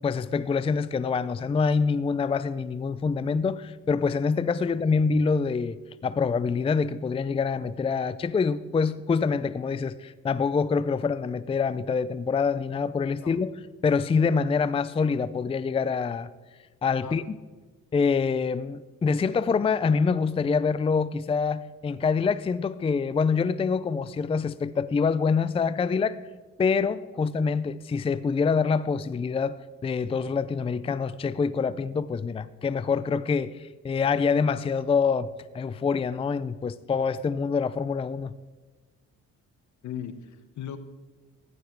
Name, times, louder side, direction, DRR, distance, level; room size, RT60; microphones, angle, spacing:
voice 1, 0.0-5.8 6.0-13.5 13.8-16.3 16.8-17.4 17.9-26.2 26.6-38.3, left 5 dB, 20° left, 0.4 m, -26 dB
voice 2, 39.8-40.8, left 9 dB, 70° left, 1.1 m, -38 dB
15.0 x 11.0 x 4.6 m
cardioid pair, 90°, 30 cm